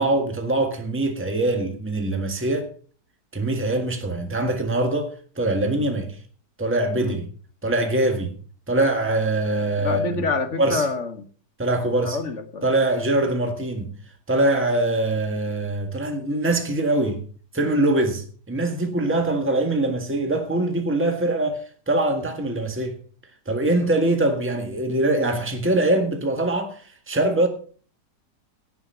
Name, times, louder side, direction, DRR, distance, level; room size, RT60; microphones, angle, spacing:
voice 1, 0.0-2.7 3.3-6.2 6.6-7.3 7.6-8.3 8.7-10.2 10.6-10.9 11.6-12.2 12.6-13.9 14.3-17.2 17.5-23.0 23.5-27.5, right 2 dB, 10° right, 1.6 m, -23 dB
voice 2, 9.8-11.2 12.0-12.6, left 3 dB, 50° left, 1.5 m, -27 dB
17.0 x 6.0 x 5.7 m
omnidirectional pair, 1.8 m